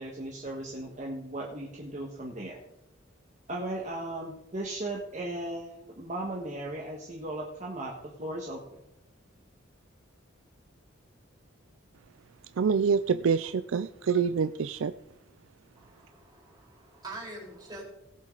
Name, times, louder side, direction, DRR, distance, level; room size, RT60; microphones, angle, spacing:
voice 1, 0.0-2.6 3.5-8.8, right 1 dB, 35° right, -2 dB, 1.6 m, -37 dB
voice 2, 12.6-14.9, right 6 dB, 70° right, 12 dB, 0.4 m, -26 dB
voice 3, 15.7-17.8, right 2 dB, 20° right, -3 dB, 4.2 m, -44 dB
17.5 x 7.4 x 3.9 m, 0.81 s
head